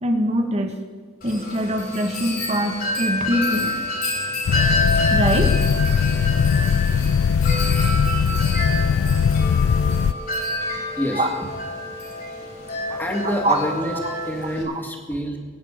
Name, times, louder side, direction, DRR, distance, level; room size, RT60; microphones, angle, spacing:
voice 1, 0.0-0.7 1.2-3.7 5.1-5.6 11.2-11.3 13.2-13.6, right 1 dB, 30° right, 4 dB, 1.7 m, -23 dB
Wind chime, 1.2-14.6, left 1 dB, 45° left, 3.5 m, -28 dB
sound 1, 4.5-10.1, left 6 dB, 75° left, 0.3 m, -20 dB
voice 2, 10.7-11.3 12.0-12.2 12.9-15.4, equal, 10° left, 1 dB, 2.0 m, -28 dB
22.5 x 9.3 x 5.1 m, 1.4 s
head